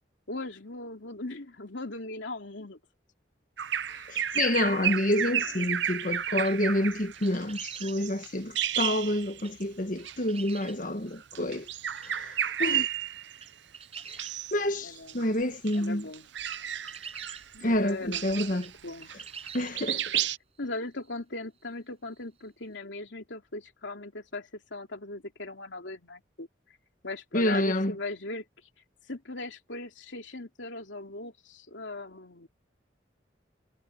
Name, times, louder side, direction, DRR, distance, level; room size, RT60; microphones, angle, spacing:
voice 1, 0.3-2.8 3.9-4.1 4.9-5.5 14.8-15.4 15.7-16.2 17.5-19.1 20.6-26.5 27.0-28.4 29.1-32.5, left 2 dB, 90° left, 3.0 m, -39 dB
Bird vocalization bird call bird song, 3.6-9.6 10.0-10.2 11.2-13.5 14.0-14.6 15.0-19.5 19.7-20.4, right 10 dB, 75° right, 0.8 m, -32 dB
voice 2, 4.1-11.7 12.0-12.9 14.1-14.2 14.5-16.0 17.6-18.7 19.5-20.3 27.3-28.0, left 1 dB, 45° left, 1.5 m, -28 dB
sound 1, 6.4-6.8 7.2-8.0 9.4-9.7 10.0-10.8 11.6-11.7 12.0-12.2 12.7-12.8 13.1-14.7 15.1-15.2 15.5-17.5 18.5-18.7 19.0-20.0 20.6-20.7 21.0-21.1 22.4-22.5, right 6 dB, 35° right, 7.7 m, -45 dB
head